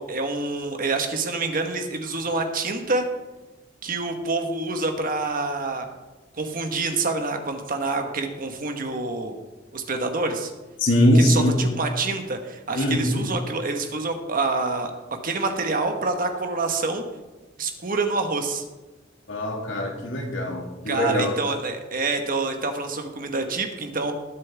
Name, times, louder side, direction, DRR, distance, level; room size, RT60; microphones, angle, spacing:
voice 1, 0.0-3.0 3.8-5.9 6.3-9.4 9.7-10.5 11.1-14.9 15.2-17.0 17.6-18.6 20.9-24.1, right 3 dB, 45° right, 5 dB, 1.3 m, -27 dB
voice 2, 10.8-11.6 12.8-13.3 19.3-21.3, left 1 dB, 75° left, 1 dB, 2.3 m, -21 dB
20.0 x 7.5 x 3.5 m, 1.2 s
head